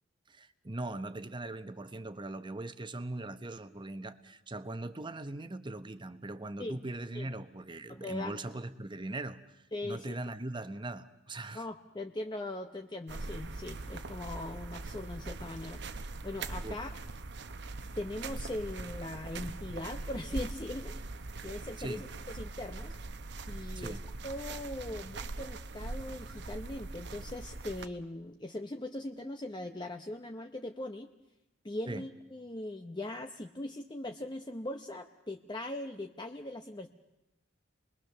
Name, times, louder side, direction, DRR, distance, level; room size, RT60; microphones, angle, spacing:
voice 1, 0.3-9.4 9.8-11.6 16.6-16.8 21.8-22.1 23.8-24.0 31.9-32.1, right 2 dB, 25° right, 0.9 m, -40 dB
voice 2, 7.9-8.4 9.7-10.1 11.5-16.9 18.0-20.9 21.4-23.0 23.5-24.0 24.2-31.1 31.6-36.9, left 1 dB, 25° left, 0.8 m, -40 dB
sound 1, 13.1-27.9, right 3 dB, 60° right, 0.9 m, -41 dB
29.0 x 21.0 x 6.7 m
head